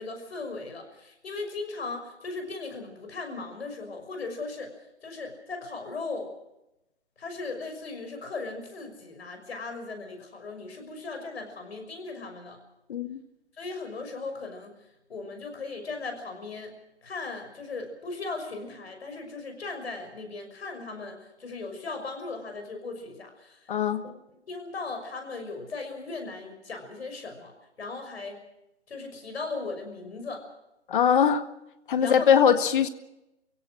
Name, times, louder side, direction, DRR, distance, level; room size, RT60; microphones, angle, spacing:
voice 1, 0.0-4.7 5.0-6.3 7.2-12.6 13.6-14.8 15.1-16.7 17.0-23.7 24.0-24.1 24.5-27.5 27.8-28.4 28.9-30.4 32.0-32.5, left 3 dB, 65° left, 5 dB, 6.2 m, -37 dB
voice 2, 23.7-24.0 30.9-31.4 31.9-32.9, left 7 dB, 45° left, 10 dB, 1.8 m, -21 dB
29.0 x 16.5 x 6.4 m, 0.90 s
figure-of-eight pair, 140°, 34 cm